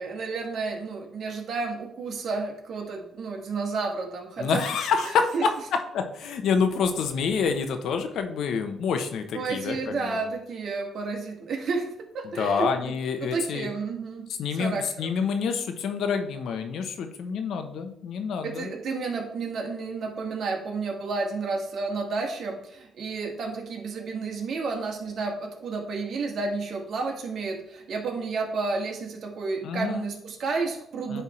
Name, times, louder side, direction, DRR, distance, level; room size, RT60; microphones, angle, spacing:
voice 1, 0.0-4.6 5.3-5.4 9.3-12.9 13.2-14.3 14.5-15.1 18.4-31.2, right 4 dB, 60° right, 1 dB, 1.7 m, -31 dB
voice 2, 4.4-10.2 12.2-13.7 14.4-18.7 29.6-30.1 31.1-31.2, left 5 dB, 75° left, 6 dB, 0.9 m, -27 dB
9.9 x 3.5 x 4.3 m, 0.75 s
cardioid pair, 90°, 0 cm